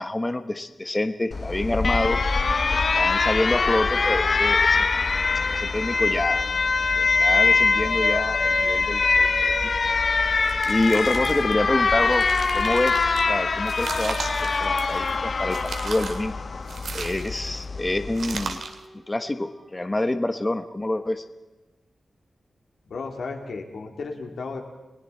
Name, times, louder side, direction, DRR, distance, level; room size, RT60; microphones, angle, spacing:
voice 1, 0.0-2.2 2.7-4.8 5.5-6.4 7.0-9.5 10.2-12.2 12.5-14.2 14.4-16.4 16.9-18.6 19.1-21.2, left 2 dB, 20° left, 8 dB, 1.0 m, -27 dB
Alarm, 1.3-18.5, left 4 dB, 45° left, 0.8 m, -23 dB
sound 1, 4.7-14.9 15.3-15.4 16.5-19.9, equal, ahead, 2.7 m, -42 dB
sound 2, 10.5-11.5 12.0-13.2 13.7-15.2 15.5-16.3 16.7-17.6 18.2-18.8, right 5 dB, 80° right, 2.2 m, -36 dB
voice 2, 22.9-24.6, left 4 dB, 90° left, 2 dB, 3.3 m, -34 dB
30.0 x 21.0 x 4.3 m, 1.1 s
wide cardioid pair, 145°, 0 cm